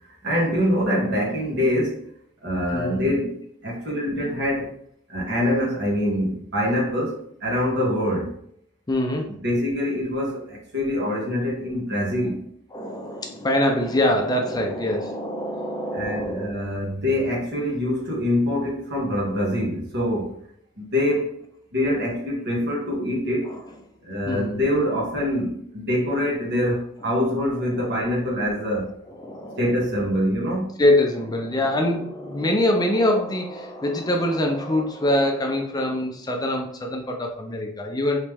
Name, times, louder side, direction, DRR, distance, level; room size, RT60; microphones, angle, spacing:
voice 1, 0.2-2.0 2.4-4.7 5.1-8.4 9.4-12.4 15.9-20.4 20.8-21.4 21.7-23.6 24.0-28.9 29.6-30.7, left 1 dB, 60° right, -3 dB, 1.3 m, -24 dB
voice 2, 2.7-3.0 8.9-9.3 12.7-16.5 23.5-23.6 24.2-24.6 27.0-27.3 27.7-28.2 28.5-28.6 29.1-29.8 30.8-38.2, left 1 dB, 20° left, 2 dB, 0.4 m, -24 dB
3.2 x 3.0 x 3.4 m, 0.66 s
head